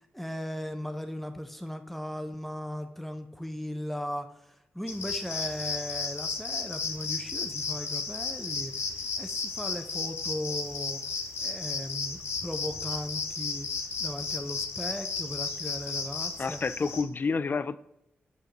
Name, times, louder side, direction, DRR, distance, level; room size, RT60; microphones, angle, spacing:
voice 1, 0.1-8.7 9.2-11.0 11.4-13.7 14.0-16.6, left 1 dB, 5° left, 0.6 m, -37 dB
sound 1, 4.9-17.0, left 4 dB, 75° left, 1.0 m, -34 dB
voice 2, 16.4-17.8, left 4 dB, 45° left, 0.4 m, -29 dB
6.6 x 5.5 x 3.0 m
supercardioid pair, 40°, 5 cm